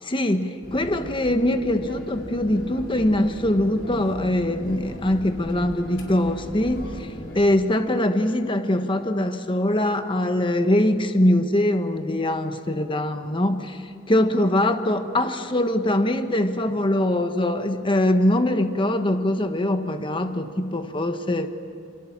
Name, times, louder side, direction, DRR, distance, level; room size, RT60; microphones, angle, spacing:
voice 1, 0.0-21.5, left 1 dB, 25° left, 7 dB, 1.2 m, -23 dB
sound 1, 0.6-7.4, left 1 dB, 85° left, 4.4 m, -38 dB
28.0 x 24.5 x 7.3 m, 2.3 s
head